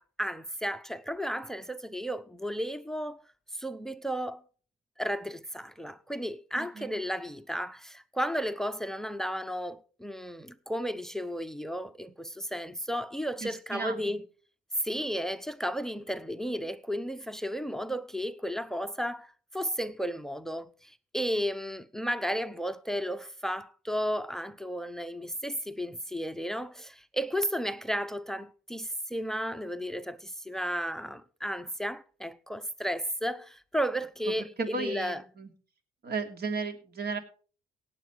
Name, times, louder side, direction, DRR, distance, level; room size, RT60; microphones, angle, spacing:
voice 1, 0.0-3.2 3.5-4.4 5.0-14.2 14.8-35.2, equal, ahead, 0.8 m, -33 dB
voice 2, 6.6-6.9 13.4-14.2 34.3-35.5 36.0-37.2, right 4 dB, 50° right, 3.0 m, -35 dB
17.5 x 7.5 x 4.6 m
cardioid pair, 90°, 20 cm